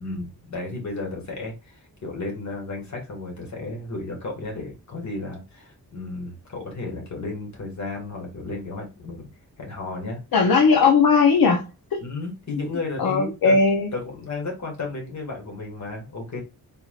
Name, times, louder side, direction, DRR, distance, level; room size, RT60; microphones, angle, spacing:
voice 1, 0.0-9.3 9.6-10.2 12.0-13.6 13.9-16.4, left 3 dB, 50° left, 1.8 m, -33 dB
voice 2, 10.3-12.0 13.0-13.9, left 4 dB, 75° left, 0.8 m, -18 dB
4.2 x 3.6 x 2.4 m
wide cardioid pair, 170°, 36 cm